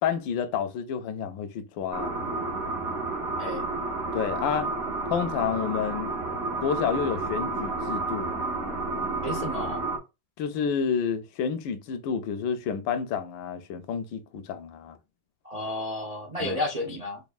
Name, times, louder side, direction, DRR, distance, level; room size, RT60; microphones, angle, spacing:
voice 1, 0.0-2.2 4.1-4.7 5.1-6.1 6.6-8.4 10.4-15.0 16.4-16.6, left 7 dB, 80° left, 1.3 m, -29 dB
sound 1, 1.9-10.0, right 3 dB, 45° right, 1.3 m, -31 dB
voice 2, 9.2-9.9 15.4-17.2, left 1 dB, 70° right, 0.3 m, -32 dB
5.2 x 2.6 x 2.3 m
omnidirectional pair, 2.1 m